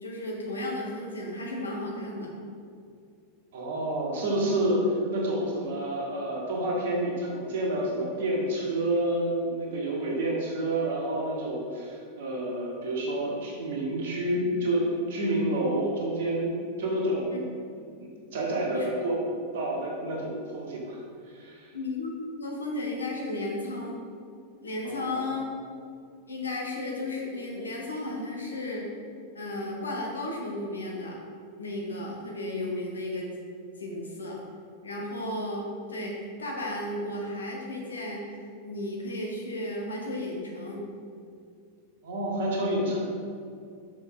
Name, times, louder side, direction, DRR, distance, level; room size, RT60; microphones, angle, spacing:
voice 1, 0.0-2.3 17.3-17.4 18.7-18.9 21.7-24.0 24.6-25.4 26.3-28.9 29.3-31.2 31.6-33.3 33.8-34.4 34.8-36.1 36.4-38.2 38.6-40.8, left 1 dB, 75° left, -1 dB, 1.2 m, -34 dB
voice 2, 3.5-16.5 16.8-17.3 17.7-19.2 19.5-21.0 21.3-21.7 24.8-25.4 42.0-43.0, right 1 dB, 55° right, -2 dB, 1.4 m, -29 dB
6.0 x 5.2 x 3.8 m, 2.3 s
figure-of-eight pair, 90°, 0 cm